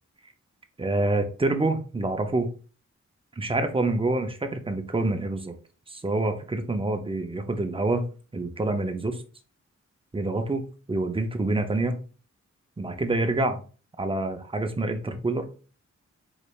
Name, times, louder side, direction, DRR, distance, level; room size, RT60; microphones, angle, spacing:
voice 1, 0.8-2.5 3.4-5.5 5.9-8.0 8.3-9.2 10.1-10.6 10.9-12.0 12.8-13.6 14.0-15.7, right 2 dB, 20° right, 6 dB, 0.4 m, -27 dB
3.9 x 3.2 x 2.3 m, 0.37 s
wide cardioid pair, 125°, 29 cm